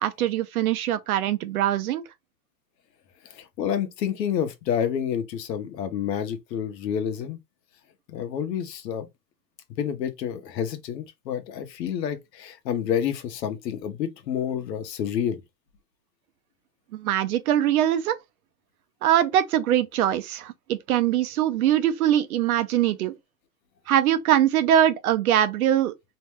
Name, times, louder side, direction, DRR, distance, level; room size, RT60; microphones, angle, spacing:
voice 1, 0.0-2.0 16.9-18.2 19.0-23.1 23.9-25.9, right 11 dB, 60° right, 0.5 m, -22 dB
voice 2, 3.2-7.4 8.1-9.1 9.8-15.4, left 8 dB, 80° left, 0.9 m, -29 dB
2.7 x 2.2 x 3.2 m
supercardioid pair, 175°, 49 cm